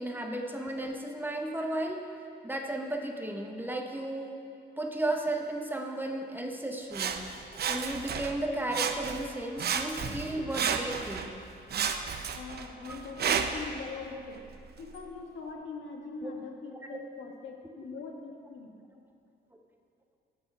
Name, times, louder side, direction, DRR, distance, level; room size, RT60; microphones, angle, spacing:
voice 1, 0.0-2.0 2.4-4.4 4.8-7.2 7.7-11.4 12.9-13.0 16.2-16.3 16.9-17.0, right 1 dB, 10° right, 2 dB, 1.1 m, -34 dB
Sawing, 6.9-8.4 8.7-9.3 9.6-11.3 11.7-13.7 14.4-14.5, right 7 dB, 55° right, 0.7 m, -32 dB
sound 1, 10.0-12.8, right 2 dB, 70° right, 2.6 m, -48 dB
voice 2, 12.3-14.5 14.8-18.7, left 4 dB, 75° left, 1 dB, 1.5 m, -42 dB
13.5 x 6.7 x 5.5 m, 2.4 s
cardioid pair, 90°, 20 cm